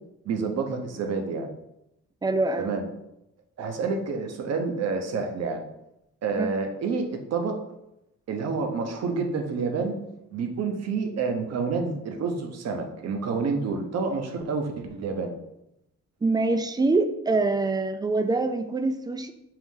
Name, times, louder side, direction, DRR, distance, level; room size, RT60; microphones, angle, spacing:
voice 1, 0.2-1.5 2.6-2.8 3.6-5.6 6.2-7.6 8.3-10.0 10.3-15.3, right 4 dB, 55° right, 4 dB, 0.8 m, -28 dB
voice 2, 2.2-2.7 6.4-6.5 16.2-19.3, right 3 dB, 15° right, 8 dB, 0.3 m, -24 dB
4.6 x 2.6 x 3.7 m, 0.84 s
cardioid pair, 90°, 30 cm